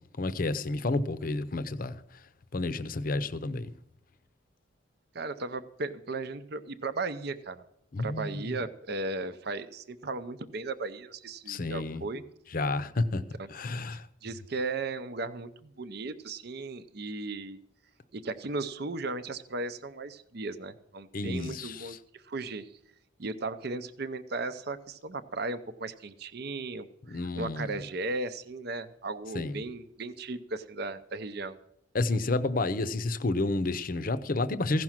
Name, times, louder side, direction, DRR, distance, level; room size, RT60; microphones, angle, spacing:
voice 1, 0.2-2.0 2.5-3.7 7.9-8.6 11.5-12.0 12.5-13.2 13.5-14.1 21.1-21.9 27.1-27.8 29.3-29.6 31.9-34.8, left 2 dB, 45° left, 0.7 m, -30 dB
voice 2, 5.1-7.6 8.0-12.2 14.2-17.6 18.1-22.7 23.2-31.6, right 3 dB, 55° right, 0.6 m, -36 dB
15.5 x 6.1 x 7.4 m
head